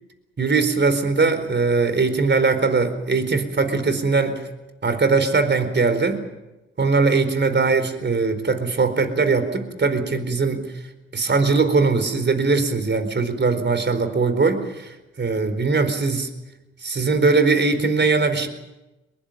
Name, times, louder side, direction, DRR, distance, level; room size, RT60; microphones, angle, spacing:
voice 1, 0.4-4.4 4.8-6.2 6.8-10.7 11.1-16.3 16.8-18.5, right 4 dB, 35° right, 10 dB, 4.5 m, -20 dB
22.5 x 22.0 x 7.1 m, 1.0 s
hypercardioid pair, 45°, 30 cm